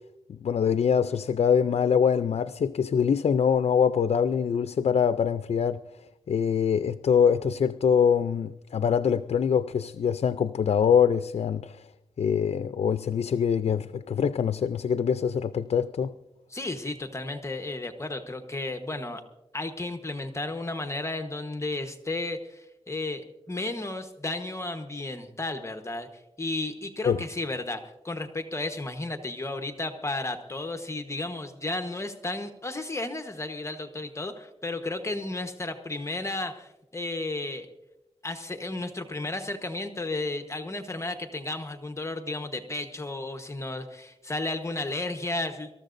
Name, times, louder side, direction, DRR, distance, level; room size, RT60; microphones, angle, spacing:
voice 1, 0.3-5.8 6.3-11.8 12.2-16.1 27.0-27.2, left 7 dB, 75° left, 0.4 m, -24 dB
voice 2, 16.5-19.2 19.5-37.7 38.2-45.7, left 2 dB, 25° left, 1.1 m, -33 dB
25.5 x 14.0 x 2.6 m
wide cardioid pair, 90°, 11 cm